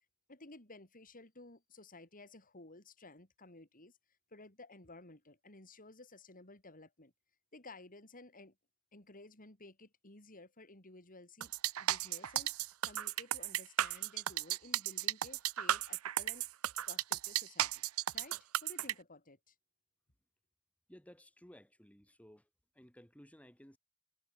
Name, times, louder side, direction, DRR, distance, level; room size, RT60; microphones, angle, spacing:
voice 1, 0.3-3.9 4.3-7.1 7.5-8.5 8.9-11.5 11.8-12.5 12.8-16.5 16.9-17.8 18.1-19.5, left 2 dB, 40° left, 6.2 m, -55 dB
sound 1, 11.4-18.9, right 12 dB, 75° right, 0.7 m, -34 dB
voice 2, 20.9-22.5 22.7-23.8, equal, 5° left, 5.6 m, -58 dB
head